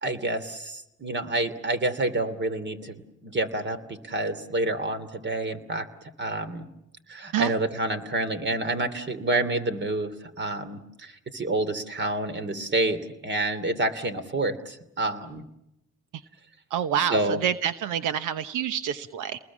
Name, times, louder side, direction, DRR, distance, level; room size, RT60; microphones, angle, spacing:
voice 1, 0.0-5.9 6.2-6.6 7.1-15.4 17.0-17.4, right 2 dB, 35° right, 10 dB, 2.9 m, -28 dB
voice 2, 16.7-19.4, right 9 dB, 85° right, 12 dB, 1.0 m, -27 dB
29.5 x 20.5 x 7.3 m, 0.85 s
cardioid pair, 90°, 30 cm